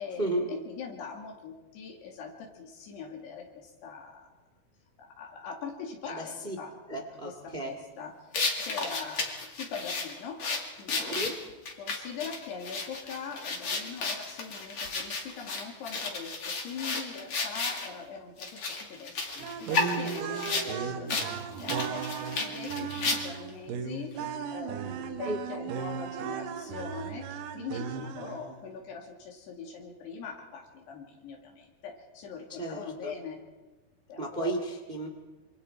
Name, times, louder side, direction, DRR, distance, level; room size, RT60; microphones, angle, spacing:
voice 1, 0.0-4.3 5.0-9.3 9.6-10.4 10.8-11.1 11.8-33.4 34.1-34.5, left 5 dB, 90° left, 0 dB, 4.4 m, -42 dB
voice 2, 6.1-6.6 6.9-7.7 11.1-11.4 20.5-21.0 25.2-25.4 32.5-33.2 34.2-35.1, right 1 dB, 30° right, 4 dB, 0.9 m, -34 dB
sound 1, 8.3-17.9 18.4-20.7 21.1-21.3 21.6-23.5, left 4 dB, 40° left, 2.7 m, -33 dB
sound 2, 19.4-28.6, right 7 dB, 80° right, 3.0 m, -36 dB
26.0 x 25.0 x 4.4 m, 1.2 s
omnidirectional pair, 4.6 m